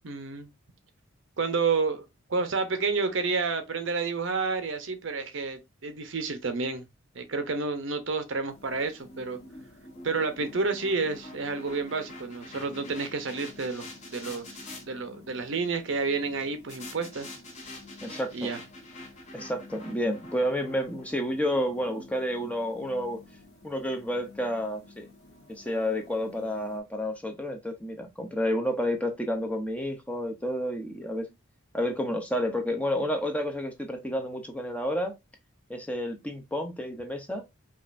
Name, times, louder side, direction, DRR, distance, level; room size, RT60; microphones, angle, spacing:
voice 1, 0.0-0.5 1.4-2.0 2.3-6.9 7.2-9.4 10.0-13.9 14.1-17.3 18.3-18.6, right 4 dB, 60° right, 0.7 m, -30 dB
sound 1, 8.5-26.8, left 3 dB, 65° left, 1.0 m, -53 dB
sound 2, 8.6-14.8 16.7-22.9, left 2 dB, 30° left, 0.9 m, -46 dB
voice 2, 18.0-18.5 19.3-23.2 23.6-25.1 25.5-31.3 31.7-35.1 35.7-37.4, equal, 5° left, 0.5 m, -30 dB
5.2 x 2.5 x 2.5 m
head